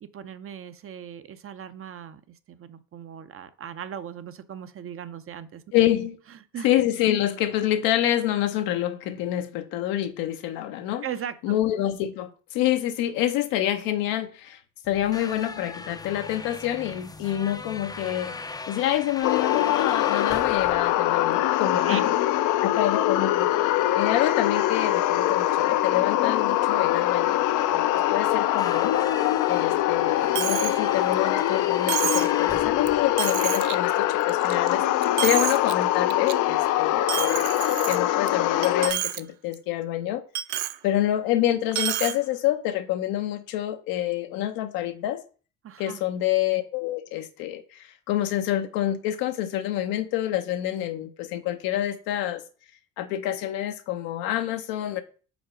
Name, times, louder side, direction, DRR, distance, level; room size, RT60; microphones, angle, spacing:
voice 1, 0.0-5.6 6.5-6.7 11.0-11.6 21.9-22.1 45.6-46.0, right 9 dB, 40° right, 12 dB, 0.6 m, -38 dB
voice 2, 5.7-6.2 6.6-11.0 11.4-14.6 14.9-22.0 22.6-23.5 23.9-27.5 27.7-29.0 29.5-37.6 37.9-40.2 40.8-45.2 45.8-52.4 53.0-55.0, left 12 dB, 85° left, 8 dB, 0.8 m, -27 dB
sound 1, 14.8-33.8, left 3 dB, 10° left, 0.5 m, -41 dB
sound 2, 19.2-38.9, left 13 dB, 65° left, 0.5 m, -23 dB
Coin (dropping), 30.3-30.8 31.1-31.2 31.9-32.3 32.9-33.0 33.2-33.7 34.2-34.7 35.0-35.7 36.1-36.3 37.1-38.3 38.6-39.2 39.5-39.6 40.3-40.8 41.7-42.2, right 14 dB, 80° right, 0.5 m, -29 dB
5.1 x 3.9 x 5.0 m, 0.37 s
supercardioid pair, 80°, 34 cm